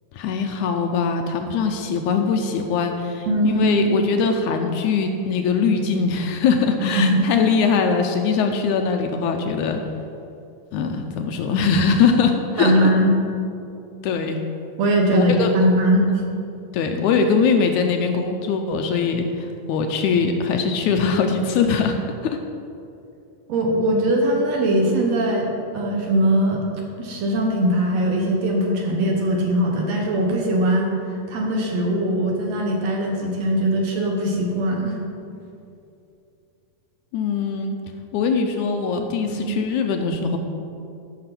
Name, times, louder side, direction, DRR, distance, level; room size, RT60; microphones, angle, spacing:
voice 1, 0.1-9.8 10.7-12.9 14.0-14.5 15.1-15.7 16.7-22.4 37.1-37.7 38.1-40.4, left 5 dB, 75° left, 5 dB, 2.0 m, -21 dB
voice 2, 3.3-3.7 6.9-7.2 12.6-13.1 14.8-16.1 23.5-26.6 27.0-30.9 31.3-35.0 39.3-39.5, right 1 dB, 60° right, 0 dB, 2.2 m, -20 dB
13.5 x 5.9 x 6.0 m, 2.6 s
omnidirectional pair, 3.7 m